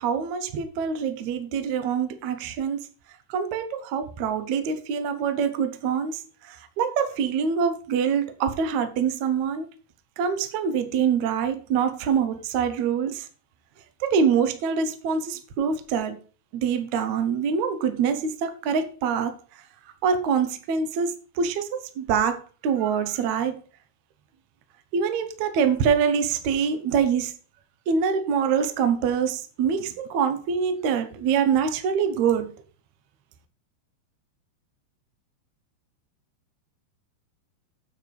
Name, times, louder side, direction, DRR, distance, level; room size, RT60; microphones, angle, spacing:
voice 1, 0.0-2.8 3.3-6.2 6.8-9.7 10.2-13.2 14.0-16.2 16.5-19.3 20.0-21.1 21.4-23.6 24.9-27.3 27.9-32.5, right 6 dB, 90° right, 1.6 m, -25 dB
8.9 x 4.8 x 6.8 m
omnidirectional pair, 5.1 m